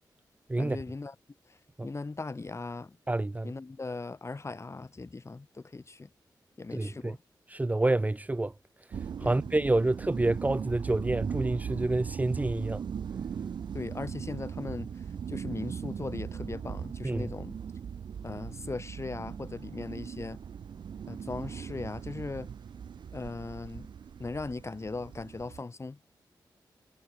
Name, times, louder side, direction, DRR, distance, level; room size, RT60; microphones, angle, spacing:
voice 1, 0.6-1.1 1.5-3.0 3.4-6.1 6.6-7.2 9.2-9.3 13.7-17.6 18.2-20.4 21.1-22.5 23.1-23.9 24.2-26.0, left 3 dB, 35° left, 2.5 m, -39 dB
voice 2, 3.1-3.5 6.7-7.2 7.5-8.5 9.2-12.8 17.0-17.3, right 2 dB, 20° right, 0.9 m, -28 dB
sound 1, 8.9-25.6, right 7 dB, 80° right, 1.2 m, -39 dB
cardioid pair, 65°, 8 cm